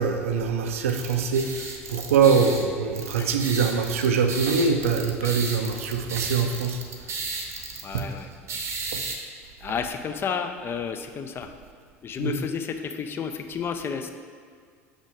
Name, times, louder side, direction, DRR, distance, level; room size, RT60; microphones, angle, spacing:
voice 1, 0.0-1.5 1.9-6.8 7.9-8.1 8.9-9.0 9.7-9.8 12.2-12.4, right 5 dB, 65° right, 6 dB, 0.5 m, -23 dB
sound 1, 0.9-9.2, right 4 dB, 35° right, 0.8 m, -35 dB
voice 2, 3.2-3.6 5.2-5.4 7.8-8.3 9.6-11.5 12.0-14.1, left 6 dB, 30° left, 7 dB, 0.5 m, -32 dB
6.2 x 5.2 x 3.6 m, 2.1 s
figure-of-eight pair, 70°, 8 cm